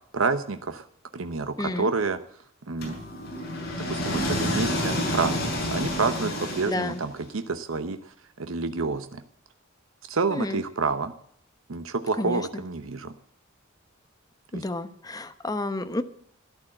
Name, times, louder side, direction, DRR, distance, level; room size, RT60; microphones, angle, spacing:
voice 1, 0.1-0.8 1.1-2.2 2.7-3.0 3.9-5.4 5.7-9.2 10.1-11.1 11.7-13.1 14.5-14.6, right 4 dB, 70° right, 9 dB, 0.9 m, -28 dB
voice 2, 1.6-1.9 6.6-7.0 10.3-10.6 12.2-12.5 14.5-16.0, left 2 dB, 20° left, 10 dB, 0.9 m, -30 dB
sound 1, 2.8-7.2, left 1 dB, 50° left, 5.8 m, -29 dB
12.5 x 11.5 x 7.7 m, 0.65 s
head